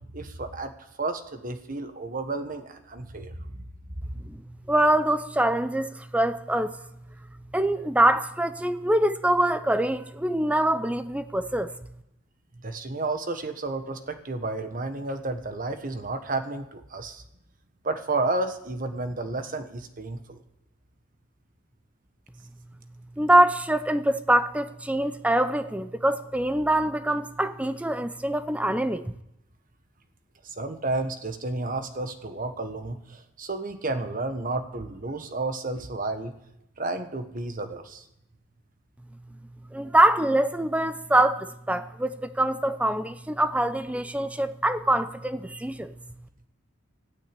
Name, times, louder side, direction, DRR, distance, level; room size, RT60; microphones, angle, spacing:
voice 1, 0.1-0.7 1.0-3.7 12.6-17.2 17.8-20.4 30.4-36.3 36.8-38.0, right 2 dB, 45° right, 1.3 m, -31 dB
voice 2, 4.7-6.8 7.5-11.7 23.2-29.1 39.7-45.9, right 1 dB, 5° right, 0.5 m, -24 dB
14.0 x 9.2 x 8.6 m
head